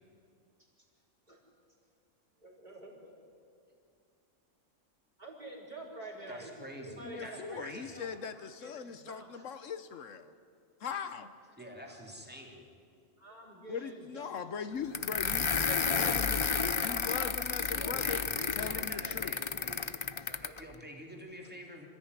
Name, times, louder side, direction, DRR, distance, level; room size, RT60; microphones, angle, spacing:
voice 1, 2.4-3.0 5.2-6.5 7.0-8.1 8.3-9.6 11.9-12.0 13.2-14.4, right 2 dB, 35° right, -3 dB, 4.7 m, -48 dB
voice 2, 6.3-8.0 11.6-12.7 17.7-19.9 20.2-21.9, equal, 5° right, 0 dB, 3.0 m, -46 dB
voice 3, 7.0-10.3 10.8-11.3 13.7-18.2 18.6-19.4, left 6 dB, 70° left, 11 dB, 1.2 m, -40 dB
sound 1, 14.9-20.6, left 5 dB, 40° left, 0.4 m, -32 dB
26.5 x 14.5 x 9.7 m, 2.3 s
omnidirectional pair, 1.4 m